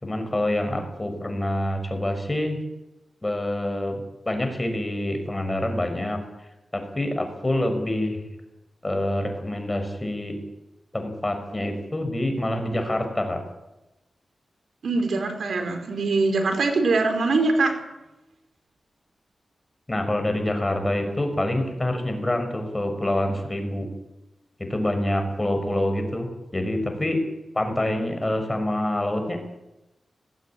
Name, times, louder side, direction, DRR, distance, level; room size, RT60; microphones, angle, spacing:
voice 1, 0.0-2.6 3.2-4.0 4.3-6.2 6.7-8.2 8.8-10.4 10.9-13.4 19.9-23.9 24.6-26.3 26.5-27.2 27.5-29.4, left 1 dB, 20° left, 5 dB, 6.3 m, -26 dB
voice 2, 14.8-17.7, right 3 dB, 80° right, 5 dB, 4.6 m, -22 dB
20.0 x 16.0 x 9.1 m, 0.97 s
cardioid pair, 65°, 0 cm